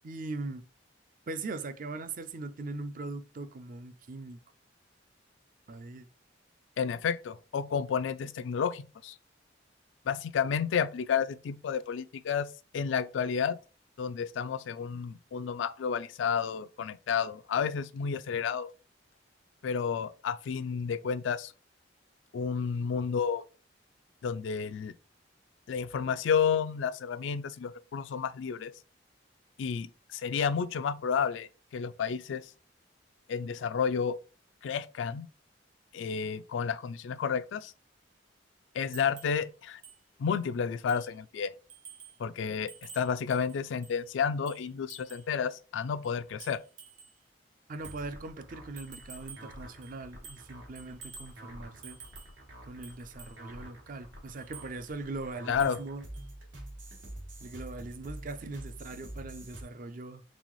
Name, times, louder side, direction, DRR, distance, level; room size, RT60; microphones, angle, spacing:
voice 1, 0.0-0.6 1.3-4.4 5.7-6.1 47.7-52.0 52.6-56.0 57.4-60.2, right 3 dB, 45° right, 0.4 m, -40 dB
voice 2, 6.8-9.2 10.1-12.5 12.7-13.6 14.0-18.7 19.6-21.5 22.3-23.4 24.2-24.9 25.7-28.7 29.6-32.5 33.3-34.2 34.6-35.3 35.9-37.7 38.7-39.8 40.2-41.5 42.2-46.6 55.5-55.8, left 6 dB, 80° left, 0.3 m, -31 dB
sound 1, 38.9-39.4 39.8-40.0 40.4-40.5 40.9-41.2 41.7-42.2 42.7-44.0 44.5-45.3 46.0-47.2 47.8-48.0 48.8-49.5 49.8-50.5 50.8-51.4 51.8-52.4 52.8-53.4 54.4-54.7 55.6-55.9 56.1-56.3, right 6 dB, 70° right, 1.1 m, -50 dB
sound 2, 47.8-59.6, right 1 dB, 90° right, 2.0 m, -47 dB
4.1 x 3.8 x 3.0 m
head